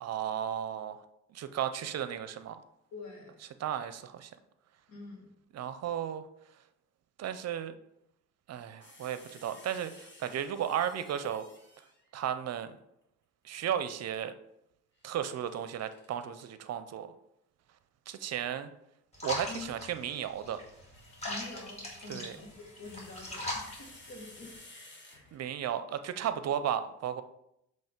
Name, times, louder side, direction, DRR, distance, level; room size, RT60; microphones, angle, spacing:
voice 1, 0.0-1.0 1.3-2.6 3.6-4.3 5.5-6.2 7.2-7.7 8.5-11.4 12.1-12.8 13.4-14.3 15.0-17.1 18.1-18.7 19.2-20.6 22.1-22.3 25.3-27.2, right 9 dB, 60° right, 11 dB, 0.5 m, -34 dB
voice 2, 2.9-3.4 4.9-5.3 19.5-19.7 21.3-25.3, left 3 dB, 70° left, 1 dB, 1.8 m, -47 dB
sound 1, 8.8-12.1 15.0-16.4 18.2-18.4 20.5-25.7, left 2 dB, 40° left, 1.6 m, -56 dB
sound 2, 19.1-24.5, left 1 dB, 20° left, 2.1 m, -41 dB
7.4 x 3.1 x 4.4 m, 0.80 s
cardioid pair, 90°, 30 cm